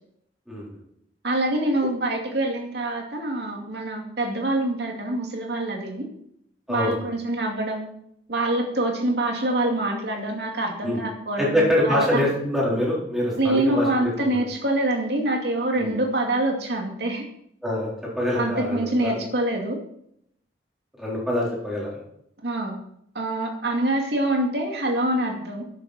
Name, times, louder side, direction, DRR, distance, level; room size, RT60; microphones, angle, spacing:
voice 1, 1.2-6.1 6.7-7.9 8.3-12.2 13.3-17.3 18.3-19.8 22.4-22.8 23.1-25.6, right 1 dB, 65° right, 1 dB, 2.4 m, -25 dB
voice 2, 6.7-7.1 10.8-11.0 11.4-14.4 15.7-15.9 17.6-17.9 18.2-19.2 21.0-21.9, left 1 dB, ahead, -5 dB, 4.1 m, -24 dB
12.0 x 8.5 x 4.3 m, 0.71 s
head